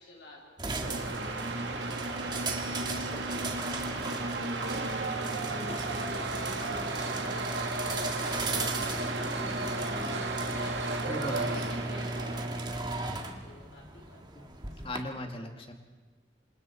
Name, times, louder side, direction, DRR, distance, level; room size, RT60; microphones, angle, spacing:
voice 1, 0.0-6.6 7.1-11.1 11.4-14.9, left 2 dB, 75° left, -3 dB, 3.4 m, -52 dB
sound 1, 0.6-15.0, right 2 dB, 25° right, 1.8 m, -36 dB
sound 2, 0.8-13.1, right 2 dB, 80° right, 2.2 m, -35 dB
voice 2, 11.1-11.5 14.4-14.5 14.8-15.7, left 1 dB, 30° left, 4 dB, 2.3 m, -37 dB
27.5 x 27.0 x 4.6 m, 1.3 s
head